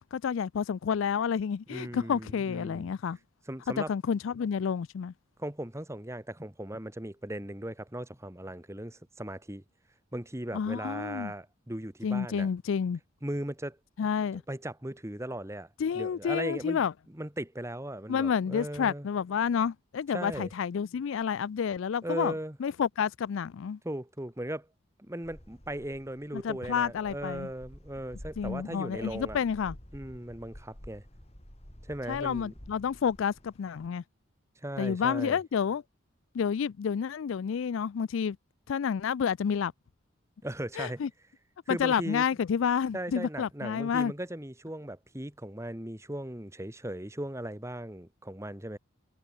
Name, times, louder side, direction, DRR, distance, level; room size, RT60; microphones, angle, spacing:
voice 1, 0.1-3.2 3.8-5.1 10.5-11.3 12.0-13.0 14.0-14.4 15.8-16.9 18.1-22.3 22.6-23.8 26.3-27.5 28.4-29.8 32.1-34.0 34.8-35.8 36.3-38.4 38.7-39.7 40.8-41.1 41.7-44.1, left 7 dB, 70° left, 0.4 m, -29 dB
voice 2, 1.7-2.9 3.5-3.9 5.4-9.6 10.1-12.5 13.2-13.8 14.3-15.7 15.9-16.8 17.1-19.1 20.1-20.5 22.0-22.6 23.8-24.7 25.0-29.4 29.9-31.0 31.9-32.5 34.6-35.4 40.4-41.0 41.7-42.2 42.9-48.8, right 1 dB, 15° right, 1.5 m, -38 dB
sound 1, 25.2-33.9, equal, 30° left, 4.3 m, -50 dB
head